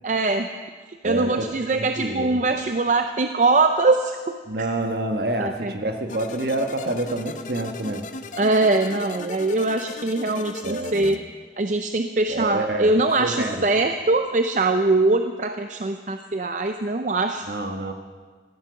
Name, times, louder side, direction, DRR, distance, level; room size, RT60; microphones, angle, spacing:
voice 1, 0.0-0.5 1.0-4.4 5.4-5.7 8.4-11.2 11.6-17.4, right 3 dB, 45° right, 7 dB, 0.5 m, -22 dB
voice 2, 1.0-2.4 4.5-8.1 10.6-11.2 12.3-13.7 17.5-17.9, right 1 dB, 60° right, 5 dB, 1.3 m, -28 dB
sound 1, 6.1-11.2, left 3 dB, 45° left, 0.7 m, -37 dB
14.5 x 10.0 x 6.9 m, 1.5 s
head